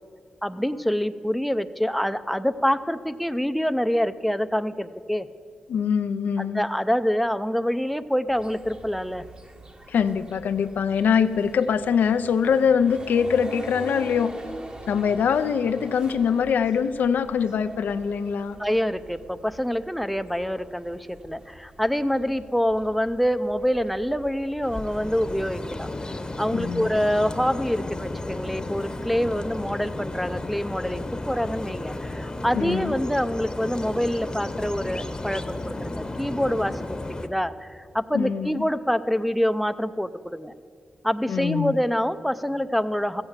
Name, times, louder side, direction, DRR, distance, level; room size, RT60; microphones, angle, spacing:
voice 1, 0.4-5.3 6.4-9.2 18.6-25.9 26.4-40.5 41.0-43.2, equal, ahead, 10 dB, 0.5 m, -26 dB
voice 2, 5.7-6.6 9.9-14.4 14.9-18.6 26.5-26.9 32.5-32.9 38.1-38.6 41.3-41.7, left 7 dB, 85° left, 10 dB, 0.5 m, -23 dB
sound 1, 8.3-25.6, right 2 dB, 30° right, 1.1 m, -44 dB
sound 2, 24.6-37.3, left 2 dB, 25° left, 0.9 m, -33 dB
14.5 x 8.0 x 7.3 m, 2.2 s
cardioid pair, 55°, 3 cm